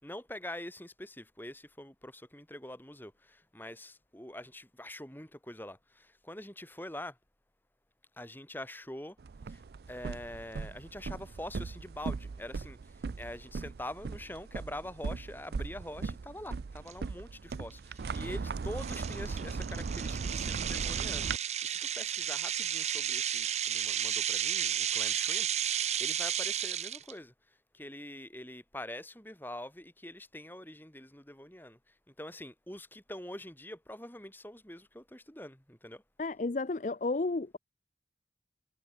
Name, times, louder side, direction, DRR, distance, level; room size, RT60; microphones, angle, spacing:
voice 1, 0.0-7.2 8.2-9.2 9.5-36.0, left 1 dB, 10° left, 5.0 m, -45 dB
sound 1, 9.2-21.4, right 4 dB, 60° right, 0.4 m, -38 dB
sound 2, 16.9-17.0 17.5-17.7 18.1-18.2 18.8-27.1, right 10 dB, 35° right, 0.8 m, -33 dB
voice 2, 36.2-37.6, left 3 dB, 40° left, 0.5 m, -32 dB
head